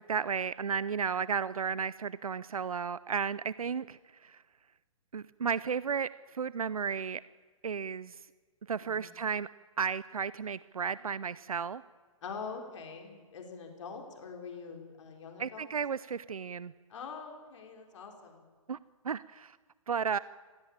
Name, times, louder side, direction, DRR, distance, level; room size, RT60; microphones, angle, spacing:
voice 1, 0.0-4.4 5.1-7.2 7.6-8.2 8.7-9.5 9.8-11.8 15.4-16.7 18.7-18.8 19.0-19.6 19.9-20.2, right 6 dB, 85° right, 18 dB, 0.6 m, -33 dB
voice 2, 8.8-9.1 12.2-15.7 16.9-18.4, left 5 dB, 60° left, 3 dB, 4.9 m, -44 dB
25.0 x 17.0 x 8.8 m, 1.5 s
hypercardioid pair, 130°, 18 cm